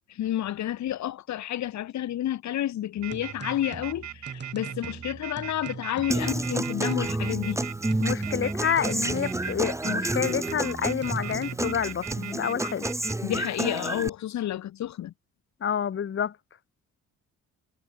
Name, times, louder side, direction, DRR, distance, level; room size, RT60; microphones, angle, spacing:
voice 1, 0.1-7.6 13.2-15.1, left 12 dB, 65° left, 1.4 m, -30 dB
sound 1, 3.0-12.2, right 5 dB, 35° right, 3.9 m, -41 dB
sound 2, 3.0-13.1, right 11 dB, 65° right, 2.8 m, -39 dB
Human voice / Acoustic guitar, 6.1-14.1, right 1 dB, 10° right, 2.2 m, -30 dB
voice 2, 8.0-12.9 15.6-16.3, left 8 dB, 40° left, 1.2 m, -28 dB
cardioid pair, 90°, 30 cm